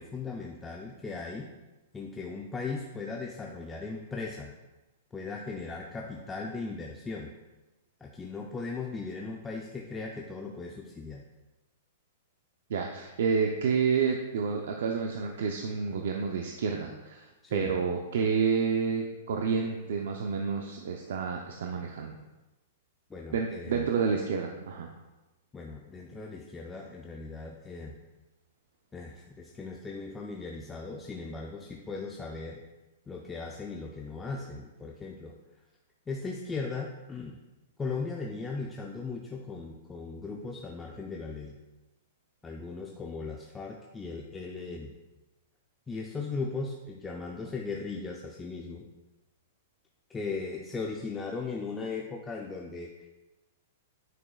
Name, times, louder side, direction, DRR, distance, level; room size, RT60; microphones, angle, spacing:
voice 1, 0.0-1.5 1.9-4.5 5.1-7.3 8.0-11.2 17.4-17.8 23.1-23.9 25.5-28.0 28.9-32.6 33.1-35.4 36.1-37.4 37.8-41.6 42.4-44.9 45.9-48.9 50.1-53.1, left 4 dB, 10° left, 0 dB, 0.5 m, -38 dB
voice 2, 12.7-22.2 23.3-24.9, right 5 dB, 75° right, 2 dB, 0.6 m, -29 dB
9.1 x 6.1 x 2.4 m, 1.1 s
hypercardioid pair, 150°, 0 cm